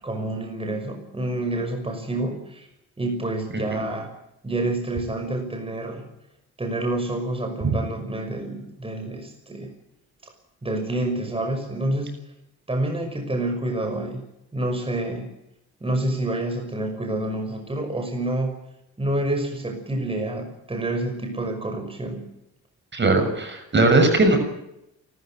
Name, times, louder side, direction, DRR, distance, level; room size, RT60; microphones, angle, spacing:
voice 1, 0.0-2.7 3.0-4.1 4.4-6.0 6.6-9.7 10.6-12.1 12.7-14.2 14.5-15.3 15.8-18.5 19.0-22.2, right 1 dB, 20° right, 4 dB, 6.0 m, -28 dB
voice 2, 22.9-24.4, right 2 dB, 40° right, 6 dB, 6.4 m, -19 dB
28.5 x 14.0 x 9.3 m, 0.84 s
cardioid pair, 90°, 30 cm